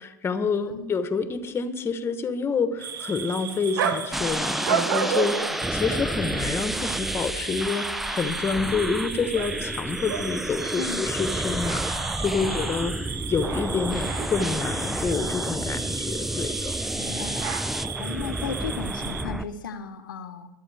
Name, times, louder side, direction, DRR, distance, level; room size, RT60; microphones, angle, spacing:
voice 1, 0.0-11.8 12.2-13.0 13.3-16.8, left 5 dB, 25° left, 10 dB, 1.2 m, -28 dB
voice 2, 0.6-0.9 10.8-11.0 12.4-12.7 16.9-17.6 18.0-20.5, left 5 dB, 80° left, 8 dB, 1.1 m, -35 dB
sound 1, 2.8-19.2, right 7 dB, 75° right, 1.1 m, -33 dB
sound 2, 4.1-19.4, right 1 dB, ahead, 0.4 m, -30 dB
23.5 x 8.6 x 3.5 m, 1.0 s
hypercardioid pair, 95°, 11 cm